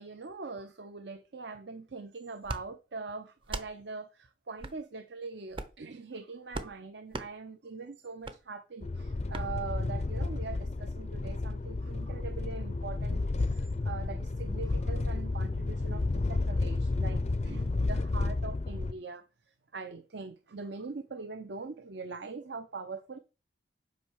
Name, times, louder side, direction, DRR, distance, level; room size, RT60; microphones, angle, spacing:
voice 1, 0.0-19.2 19.7-23.2, right 4 dB, 65° right, 0.7 m, -42 dB
sound 1, 2.4-2.6 3.4-3.7 4.6-4.8 5.5-5.8 6.5-6.7 7.1-7.3 8.2-8.4 9.3-9.5, right 2 dB, 25° right, 0.7 m, -38 dB
sound 2, 8.8-18.9, left 2 dB, 35° left, 0.4 m, -31 dB
8.6 x 5.3 x 6.3 m
head